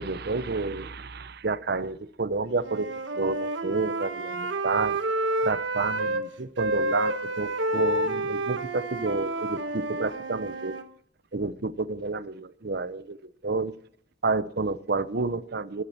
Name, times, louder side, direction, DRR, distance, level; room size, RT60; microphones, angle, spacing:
voice 1, 0.0-2.9 3.1-5.0 5.4-10.8 11.3-13.2 13.4-13.7 14.2-15.8, right 3 dB, 55° right, 15 dB, 0.8 m, -30 dB
Wind instrument woodwind instrument, 2.6-6.2 6.6-10.8, right 2 dB, 75° right, 1.4 m, -29 dB
22.0 x 11.5 x 4.3 m, 0.64 s
head